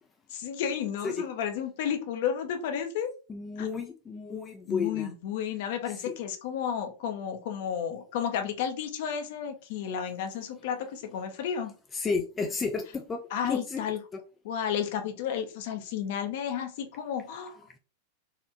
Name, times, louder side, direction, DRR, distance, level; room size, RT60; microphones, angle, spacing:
voice 1, 0.3-3.1 3.6-3.7 4.7-11.7 13.3-14.0 14.4-17.6, left 8 dB, 50° left, 0.7 m, -32 dB
voice 2, 3.3-5.1 5.9-6.1 11.9-13.8 14.1-14.2, left 5 dB, 20° left, 0.4 m, -32 dB
4.3 x 2.5 x 2.5 m
figure-of-eight pair, 90°, 0 cm